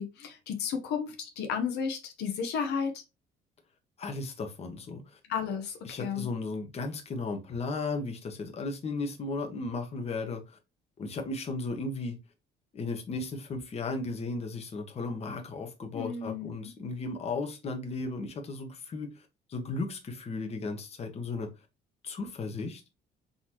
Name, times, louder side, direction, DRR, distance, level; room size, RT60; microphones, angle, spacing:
voice 1, 0.0-2.9 5.3-6.2 15.9-16.7, left 6 dB, 85° left, 1.1 m, -33 dB
voice 2, 4.0-5.2 5.8-10.4 11.0-12.2 12.7-19.1 19.5-21.5 22.0-22.8, left 3 dB, 40° left, 1.2 m, -35 dB
4.0 x 3.9 x 3.0 m
cardioid pair, 110°, 17 cm